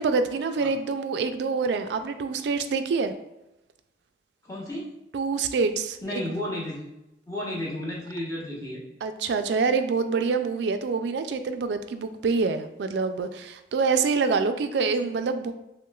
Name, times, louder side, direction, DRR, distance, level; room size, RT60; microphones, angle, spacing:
voice 1, 0.0-3.1 5.1-6.2 9.0-15.5, right 4 dB, 70° right, 9 dB, 0.3 m, -26 dB
voice 2, 4.4-4.9 6.0-6.9 7.3-8.8, left 1 dB, 15° left, -6 dB, 1.0 m, -33 dB
6.0 x 2.1 x 2.3 m, 0.90 s
head